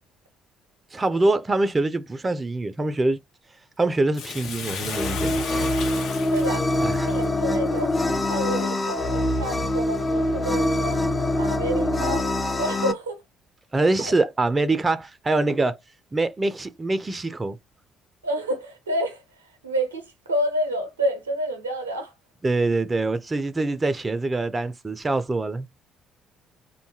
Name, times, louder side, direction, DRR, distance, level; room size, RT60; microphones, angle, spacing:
voice 1, 0.9-3.2 3.8-5.4 6.8-7.1 13.7-15.8 16.1-17.6 22.4-25.8, right 2 dB, 25° right, 0.4 m, -24 dB
Bathtub (filling or washing), 4.1-8.7 9.2-9.3, left 6 dB, 60° left, 0.7 m, -35 dB
sound 1, 4.9-12.9, left 1 dB, 25° left, 0.6 m, -24 dB
voice 2, 6.3-6.7 7.0-7.9 8.3-12.3 12.6-13.2 14.0-14.1 18.2-19.2 19.6-22.1, right 1 dB, 90° right, 0.6 m, -29 dB
2.6 x 2.2 x 2.6 m
figure-of-eight pair, 50°, 0 cm